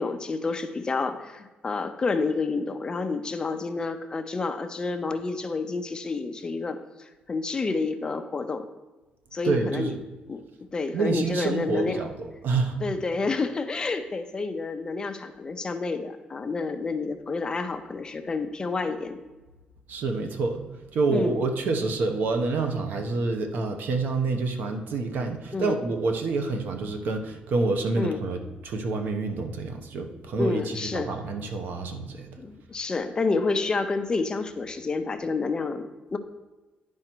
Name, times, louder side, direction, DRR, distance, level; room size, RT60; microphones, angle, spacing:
voice 1, 0.0-8.7 9.3-9.9 10.3-10.4 10.7-12.1 12.8-19.2 21.1-21.4 25.5-25.8 28.0-28.2 30.4-31.1 32.4-36.2, left 3 dB, 25° left, 8 dB, 0.5 m, -29 dB
voice 2, 9.4-10.0 10.9-12.8 19.9-20.6 20.9-32.3, right 3 dB, 70° right, 5 dB, 1.0 m, -27 dB
10.5 x 4.9 x 4.5 m, 1.2 s
cardioid pair, 150°, 3 cm